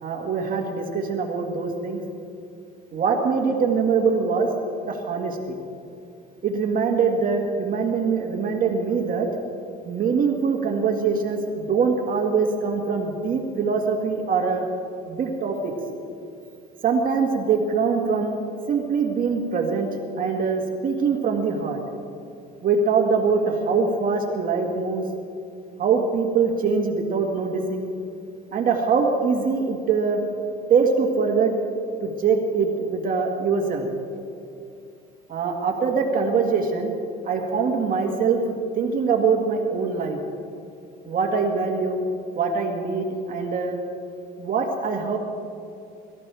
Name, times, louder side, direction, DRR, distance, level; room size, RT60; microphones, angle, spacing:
voice 1, 0.0-2.0 2.9-4.5 4.8-5.6 6.4-9.3 9.9-14.7 15.1-15.7 16.8-18.4 18.7-19.9 20.2-21.8 22.6-25.1 25.8-27.9 28.5-30.2 30.7-31.5 32.0-33.9 35.3-36.9 37.3-40.2 41.0-42.1 42.4-43.8 44.4-45.2, right 5 dB, 45° right, 1 dB, 1.8 m, -23 dB
23.5 x 13.5 x 3.4 m, 2.5 s
cardioid pair, 130°, 21 cm